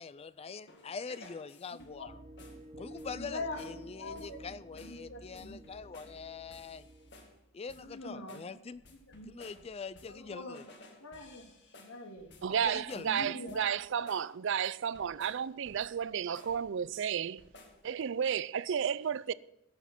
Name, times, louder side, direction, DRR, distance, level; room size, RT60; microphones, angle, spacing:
voice 1, 0.0-2.2 2.8-6.9 7.5-8.8 9.3-10.6 12.6-13.3, left 5 dB, 30° left, 0.4 m, -44 dB
sound 1, 0.7-2.1 2.4-2.7 3.0-3.3 3.6-3.8 4.2-4.4 4.8-5.0 5.3-6.2 6.5-7.4 7.7-8.0 8.3-10.3 10.5-13.2 13.5-13.8 14.1-14.3 14.6-16.0 16.3-17.1 17.4-17.8, left 2 dB, 55° left, 2.1 m, -57 dB
voice 2, 1.7-2.1 3.1-3.7 4.0-5.8 7.8-9.3 10.1-10.7 11.0-11.5 11.8-12.3 12.9-13.7, left 2 dB, 85° left, 2.1 m, -44 dB
sound 2, 2.1-7.4, right 1 dB, 30° right, 1.0 m, -51 dB
voice 3, 12.4-17.4 17.8-19.3, right 8 dB, 60° right, 0.4 m, -32 dB
17.0 x 7.2 x 6.0 m
head